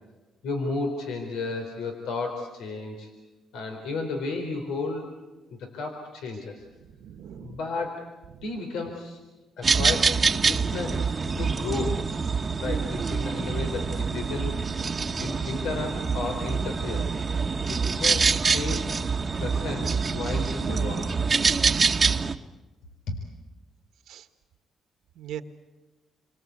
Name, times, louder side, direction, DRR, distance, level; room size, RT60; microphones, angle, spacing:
voice 1, 0.4-3.1 3.5-5.1 5.5-6.6 7.4-8.1 8.4-9.2 9.6-11.1 11.4-12.1 12.6-14.9 15.2-17.1 17.7-21.1 23.1-23.2, left 3 dB, 85° left, 3 dB, 4.2 m, -33 dB
voice 2, 6.8-7.6 8.3-8.5 24.1-24.3 25.1-25.4, right 10 dB, 80° right, 8 dB, 1.7 m, -40 dB
sound 1, 9.6-22.4, right 5 dB, 35° right, 1.2 m, -25 dB
29.0 x 24.0 x 8.3 m, 1.1 s
cardioid pair, 90°, 0 cm